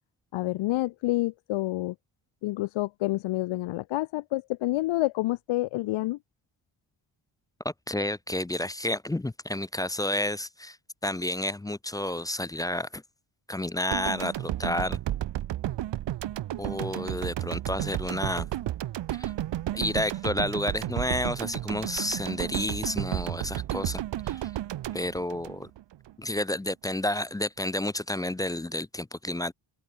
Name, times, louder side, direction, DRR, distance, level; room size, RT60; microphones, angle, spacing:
voice 1, 0.3-1.9 2.4-6.2, left 18 dB, 90° left, 0.5 m, -28 dB
voice 2, 7.6-10.8 11.0-13.0 13.5-15.0 16.6-18.5 19.1-19.3 19.7-24.5 24.9-25.7 26.2-29.5, left 1 dB, 10° left, 0.3 m, -30 dB
sound 1, 13.9-26.1, right 13 dB, 65° right, 0.8 m, -32 dB
open air
wide cardioid pair, 180°, 46 cm